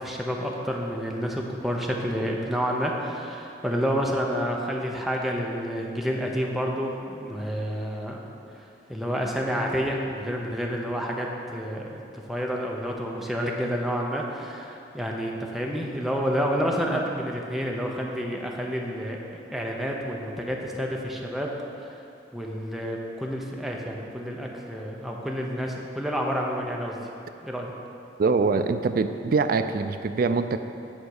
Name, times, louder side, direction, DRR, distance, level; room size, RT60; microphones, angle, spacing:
voice 1, 0.0-8.2 8.6-21.5 22.3-27.0 27.4-27.7, equal, ahead, -1 dB, 0.8 m, -29 dB
voice 2, 28.2-30.6, right 4 dB, 55° right, 8 dB, 0.4 m, -24 dB
9.4 x 4.3 x 6.4 m, 2.9 s
head